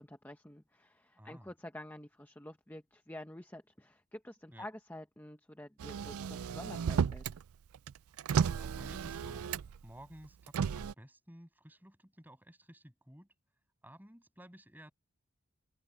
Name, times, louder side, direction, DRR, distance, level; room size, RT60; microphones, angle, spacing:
voice 1, 0.0-7.4, left 1 dB, 10° left, 1.0 m, -49 dB
voice 2, 1.2-1.5 4.5-4.7 8.5-9.5 9.8-13.3 13.8-14.9, equal, 10° right, 6.6 m, -54 dB
Motor vehicle (road), 5.8-7.4 7.7-9.9 10.5-10.9, right 7 dB, 85° right, 0.4 m, -33 dB
open air
head